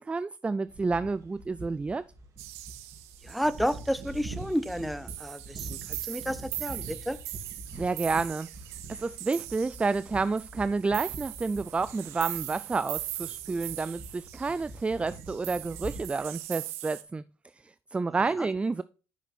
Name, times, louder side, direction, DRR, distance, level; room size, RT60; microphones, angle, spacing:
voice 1, 0.0-2.0 7.7-8.5 8.9-17.2 17.6-18.8, right 4 dB, 15° right, 0.3 m, -30 dB
sound 1, 0.7-16.4, right 2 dB, 45° right, 2.4 m, -45 dB
sound 2, 2.4-17.0, right 16 dB, 85° right, 0.6 m, -40 dB
voice 2, 3.2-7.2 18.4-18.5, equal, ahead, 0.7 m, -31 dB
8.3 x 5.8 x 4.4 m
hypercardioid pair, 70°, 7 cm